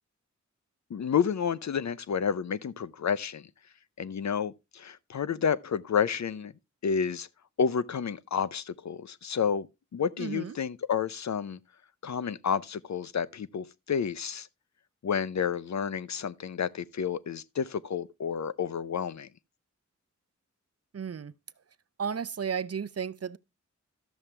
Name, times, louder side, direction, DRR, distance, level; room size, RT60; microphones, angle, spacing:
voice 1, 0.9-3.4 4.0-6.5 6.8-7.3 7.6-9.7 9.9-11.6 12.0-14.5 15.0-19.3, left 7 dB, 65° left, 0.6 m, -30 dB
voice 2, 10.2-10.5 20.9-21.3 22.0-23.4, right 7 dB, 55° right, 0.6 m, -33 dB
12.5 x 7.2 x 3.2 m
cardioid pair, 50°, 30 cm